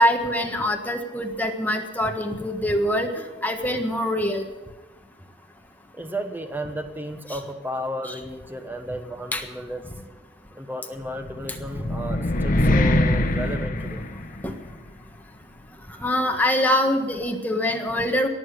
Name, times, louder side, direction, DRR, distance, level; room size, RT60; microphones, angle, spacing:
voice 1, 0.0-4.4 9.3-9.4 14.4-14.5 16.0-18.3, left 1 dB, 10° left, 3 dB, 1.5 m, -24 dB
voice 2, 5.9-9.9 10.5-14.0, equal, 10° right, 7 dB, 1.2 m, -33 dB
sound 1, 11.2-14.7, left 1 dB, 50° left, 1.1 m, -23 dB
18.0 x 7.5 x 9.8 m, 1.2 s
head